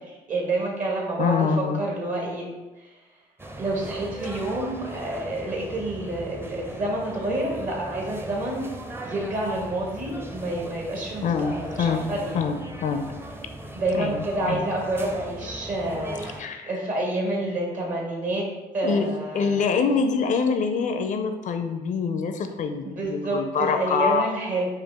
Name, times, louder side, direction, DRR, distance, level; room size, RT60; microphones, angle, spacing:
voice 1, 0.1-2.5 2.8-3.0 3.6-8.7 9.0-12.4 13.7-18.4 18.7-19.7 22.8-24.6, right 2 dB, 55° right, -1 dB, 1.3 m, -28 dB
voice 2, 1.2-1.8 11.2-12.0 12.3-13.0 14.0-14.7 16.4-16.7 17.5-17.6 18.8-19.1 19.3-24.3, left 5 dB, 55° left, 7 dB, 0.4 m, -25 dB
sound 1, 3.4-16.4, right 1 dB, 15° right, 0.5 m, -39 dB
4.9 x 2.4 x 3.5 m, 1.1 s
supercardioid pair, 65°, 16 cm